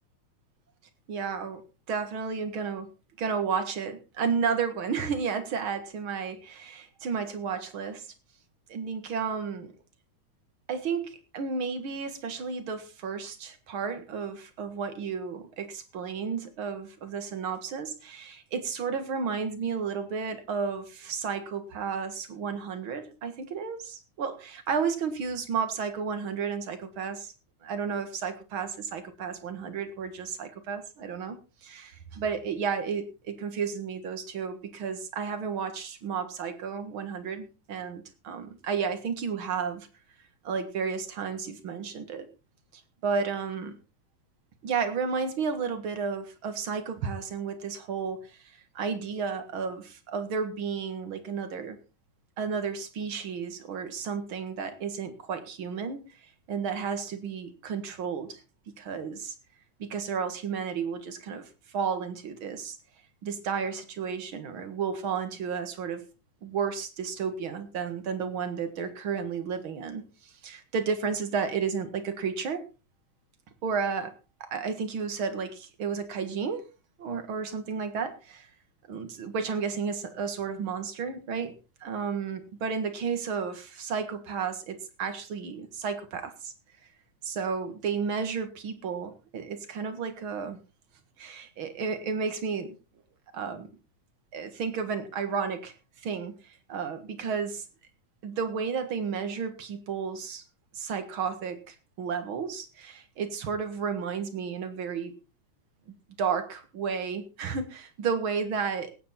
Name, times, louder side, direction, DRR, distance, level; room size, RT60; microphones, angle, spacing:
voice 1, 1.1-1.6 1.9-2.9 3.2-8.1 8.7-9.7 10.7-27.3 27.6-39.9 40.4-42.2 42.7-43.8 44.6-51.8 52.4-58.4 58.8-59.3 59.8-62.8 63.2-66.0 66.4-72.6 73.6-74.1 74.4-76.6 77.0-78.5 78.9-86.5 87.2-90.6 91.2-92.8 93.3-93.7 94.3-95.7 96.0-97.7 98.2-100.4 100.7-105.2 106.2-108.9, right 6 dB, 50° right, 9 dB, 2.1 m, -32 dB
19.0 x 9.0 x 4.2 m, 0.32 s
omnidirectional pair, 3.6 m